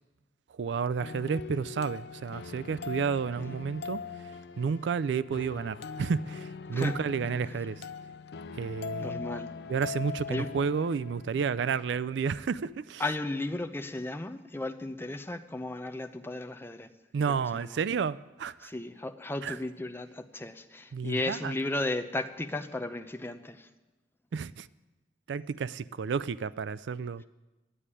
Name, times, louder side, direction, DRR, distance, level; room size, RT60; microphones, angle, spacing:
voice 1, 0.6-4.0 4.6-7.9 8.5-9.2 9.7-13.0 17.1-18.7 19.4-19.6 20.9-21.5 24.3-24.7 25.3-27.2, right 6 dB, 75° right, 0.4 m, -31 dB
sound 1, 1.0-12.0, left 5 dB, 65° left, 0.5 m, -41 dB
voice 2, 9.0-9.5 10.3-10.5 13.0-16.9 17.3-17.8 18.6-23.7, left 2 dB, 15° left, 0.6 m, -35 dB
10.0 x 9.1 x 9.8 m
head